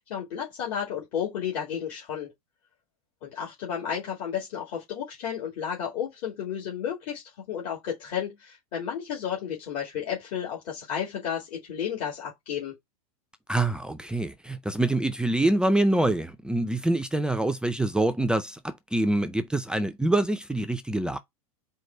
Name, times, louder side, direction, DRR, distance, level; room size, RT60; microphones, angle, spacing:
voice 1, 0.1-2.3 3.2-12.7, left 8 dB, 50° left, 1.9 m, -32 dB
voice 2, 13.5-21.2, right 1 dB, 5° right, 0.4 m, -25 dB
4.6 x 2.3 x 4.3 m
hypercardioid pair, 95°, 19 cm